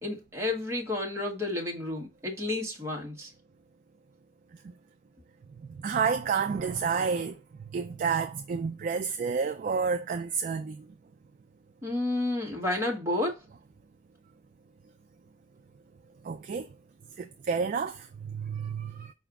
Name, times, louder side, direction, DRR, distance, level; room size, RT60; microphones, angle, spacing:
voice 1, 0.0-3.3 11.8-13.4, left 2 dB, 15° right, 1.1 m, -31 dB
voice 2, 5.7-7.4 7.7-10.9 16.2-16.7 17.2-19.1, right 5 dB, 45° right, 0.3 m, -30 dB
4.9 x 2.4 x 3.4 m
head